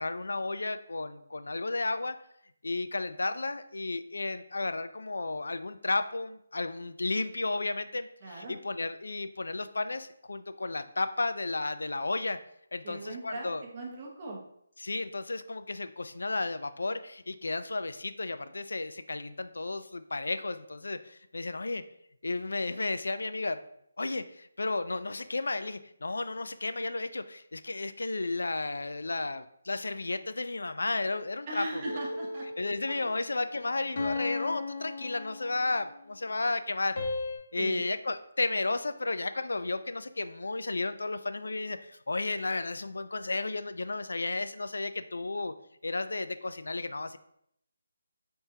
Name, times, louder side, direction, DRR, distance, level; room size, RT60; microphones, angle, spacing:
voice 1, 0.0-2.2 2.6-12.4 12.7-13.6 14.8-21.8 22.2-23.6 24.0-31.8 32.6-37.0 37.5-45.5 45.8-47.2, left 3 dB, 85° left, 11 dB, 0.3 m, -33 dB
voice 2, 8.2-8.6 12.8-14.4 31.5-32.5 32.9-33.2 37.5-37.8, right 2 dB, 20° right, -1 dB, 0.7 m, -39 dB
sound 1, 31.8-32.8 34.0-35.8 36.9-37.4, left 3 dB, 40° left, 0.7 m, -35 dB
4.3 x 3.5 x 2.7 m, 0.72 s
hypercardioid pair, 180°, 0 cm